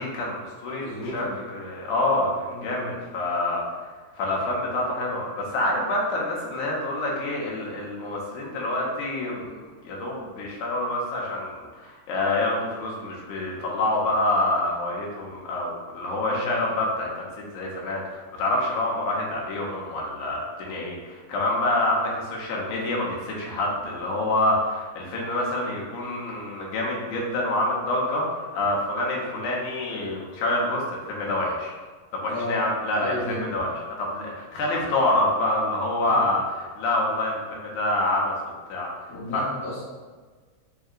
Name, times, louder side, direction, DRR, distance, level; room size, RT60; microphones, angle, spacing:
voice 1, 0.0-3.6 4.2-31.7 32.1-33.7 34.0-36.4 36.8-38.4 38.7-38.9 39.3-39.4, left 1 dB, 85° left, -3 dB, 2.2 m, -27 dB
voice 2, 0.7-1.3 2.5-2.9 16.3-16.5 32.3-32.6 32.9-33.5 36.0-36.2 39.1-39.8, left 1 dB, 65° left, -11 dB, 1.2 m, -34 dB
5.2 x 2.7 x 2.4 m, 1.4 s
omnidirectional pair, 3.5 m